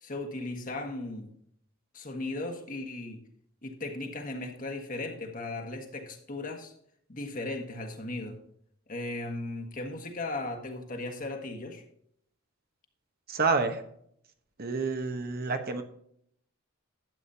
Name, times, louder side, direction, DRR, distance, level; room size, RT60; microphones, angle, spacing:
voice 1, 0.0-1.3 1.9-3.2 3.6-6.7 7.1-8.4 8.9-11.8, left 2 dB, 40° left, 4 dB, 1.5 m, -37 dB
voice 2, 13.3-13.8 14.6-15.8, right 4 dB, 50° right, 6 dB, 1.1 m, -28 dB
12.0 x 8.5 x 2.8 m, 0.68 s
head